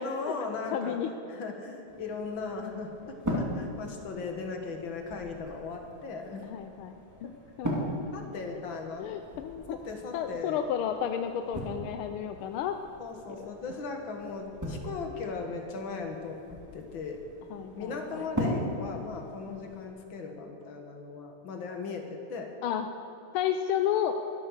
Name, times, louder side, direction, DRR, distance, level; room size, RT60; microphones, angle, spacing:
voice 1, 0.0-1.0 1.3-6.4 8.1-9.2 9.7-10.6 13.0-16.4 16.7-17.2 17.7-22.5, left 4 dB, 65° left, 3 dB, 2.3 m, -38 dB
voice 2, 0.7-1.1 4.2-4.3 6.4-7.3 7.6-7.9 9.0-9.8 10.1-12.8 17.5-18.3 22.6-22.9 23.3-24.1, left 9 dB, 90° left, 7 dB, 1.5 m, -32 dB
sound 1, 1.9-19.9, equal, 10° right, 2.3 m, -39 dB
22.5 x 8.8 x 6.5 m, 2.9 s
omnidirectional pair, 2.3 m